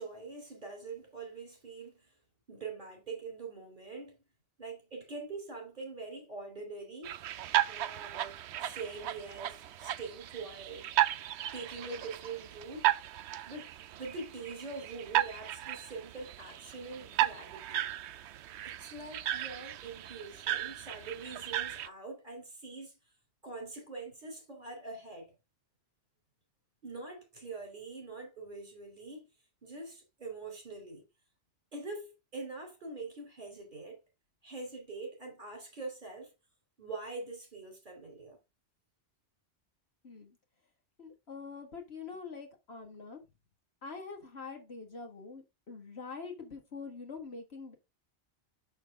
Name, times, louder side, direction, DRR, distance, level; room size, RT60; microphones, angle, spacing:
voice 1, 0.0-2.1 2.5-4.2 4.6-7.2 7.7-10.9 11.5-12.9 13.5-17.9 18.6-23.0 23.4-25.3 26.8-29.3 29.6-31.0 31.7-34.0 34.4-36.3 36.8-38.4, right 3 dB, 50° right, 3.6 m, -44 dB
sound 1, 7.0-21.9, right 12 dB, 90° right, 0.9 m, -35 dB
voice 2, 40.0-40.4 41.0-43.2 43.8-47.7, left 4 dB, 70° left, 2.0 m, -45 dB
6.5 x 6.4 x 3.5 m
omnidirectional pair, 1.1 m